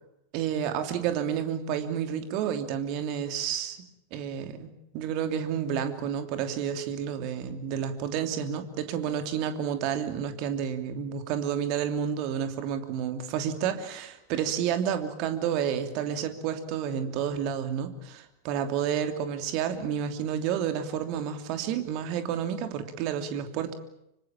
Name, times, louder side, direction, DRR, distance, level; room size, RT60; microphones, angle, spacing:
voice 1, 0.3-3.8 4.1-23.7, right 8 dB, 45° right, 8 dB, 3.0 m, -30 dB
26.0 x 24.5 x 7.5 m, 0.81 s
figure-of-eight pair, 90°, 0 cm